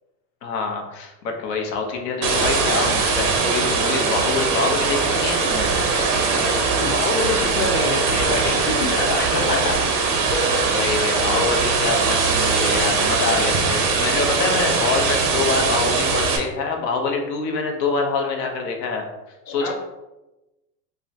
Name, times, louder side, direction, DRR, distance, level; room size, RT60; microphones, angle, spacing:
voice 1, 0.4-5.7 9.2-9.8 10.0-10.2 10.7-19.0 19.5-19.7, left 4 dB, 85° left, 2 dB, 0.8 m, -25 dB
sound 1, 2.2-16.4, right 4 dB, 30° right, 0.4 m, -21 dB
voice 2, 6.8-9.6 10.3-10.6 14.4-14.7 19.5-19.7, left 3 dB, 30° left, 0 dB, 0.5 m, -26 dB
3.6 x 2.2 x 2.5 m, 1.0 s
supercardioid pair, 130°, 48 cm